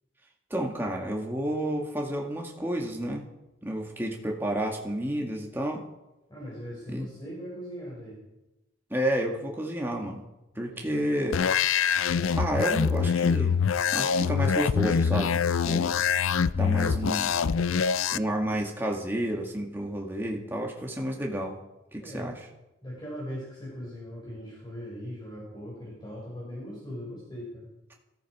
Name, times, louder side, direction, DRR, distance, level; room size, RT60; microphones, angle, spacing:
voice 1, 0.5-3.2 3.6-5.9 6.9-7.1 8.9-10.2 10.6-11.5 12.3-13.6 13.9-16.0 16.6-17.3 18.1-21.6 21.9-22.4, right 1 dB, 10° right, 0 dB, 1.9 m, -30 dB
voice 2, 6.3-8.2 10.6-11.1 22.0-22.3 22.8-27.7, equal, 20° left, -5 dB, 5.1 m, -40 dB
sound 1, 11.3-18.2, left 6 dB, 90° left, 0.5 m, -25 dB
19.5 x 14.0 x 4.8 m, 0.99 s
head